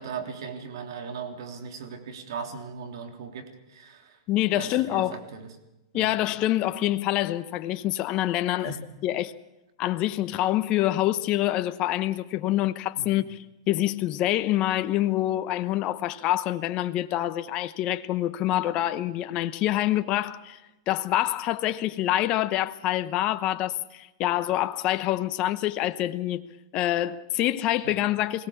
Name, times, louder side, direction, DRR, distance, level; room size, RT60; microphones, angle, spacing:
voice 1, 0.0-4.2 4.5-5.5 5.9-6.2 8.6-8.8 13.0-13.1 27.8-28.0, right 6 dB, 75° right, 3.2 m, -38 dB
voice 2, 4.3-5.2 5.9-8.7 9.0-9.3 9.8-20.6 20.9-26.4 26.7-28.5, left 14 dB, 40° left, 1.0 m, -26 dB
22.0 x 17.5 x 7.2 m
hypercardioid pair, 130°, 2 cm